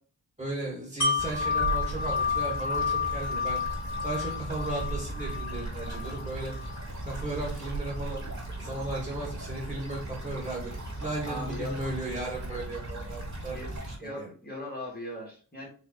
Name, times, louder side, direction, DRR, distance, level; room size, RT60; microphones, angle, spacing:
voice 1, 0.4-3.6 4.0-6.5 7.0-8.3 8.6-10.7 11.0-13.6 13.9-14.3, right 2 dB, 15° right, -4 dB, 2.0 m, -35 dB
Wind chime, 1.0-6.8 7.2-7.3, left 5 dB, 50° left, 2.3 m, -31 dB
sound 1, 1.2-14.0, right 2 dB, 50° right, 2.1 m, -37 dB
voice 2, 11.2-11.8 13.5-13.7 14.0-15.7, left 1 dB, 25° left, -4 dB, 2.0 m, -39 dB
4.5 x 3.0 x 3.2 m, 0.41 s
wide cardioid pair, 85°, 37 cm